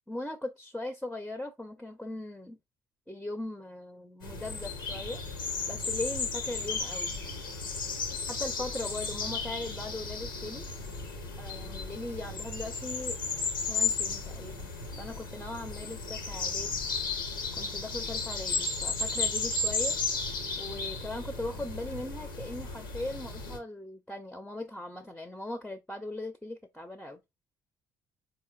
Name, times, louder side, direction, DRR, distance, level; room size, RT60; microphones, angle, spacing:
voice 1, 0.1-2.6 3.1-5.2 5.7-7.1 8.3-10.7 11.4-13.2 13.7-16.7 17.6-20.0 20.6-27.2, left 2 dB, 5° left, 0.5 m, -39 dB
sound 1, 4.2-23.6, left 4 dB, 85° left, 0.6 m, -34 dB
4.0 x 3.0 x 2.3 m
hypercardioid pair, 55°, 11 cm